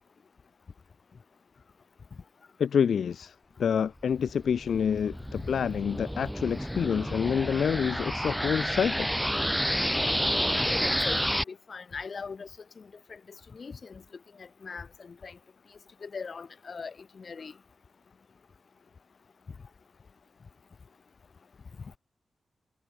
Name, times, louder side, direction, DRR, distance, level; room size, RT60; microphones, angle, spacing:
voice 1, 2.6-3.3 3.6-9.1, left 7 dB, 85° left, 0.4 m, -27 dB
sound 1, 4.1-11.4, equal, ahead, 0.4 m, -30 dB
voice 2, 10.3-12.5 12.8-13.2 13.5-14.0 14.4-15.4 16.0-17.5, left 5 dB, 50° left, 3.8 m, -41 dB
wide cardioid pair, 105°, 0 cm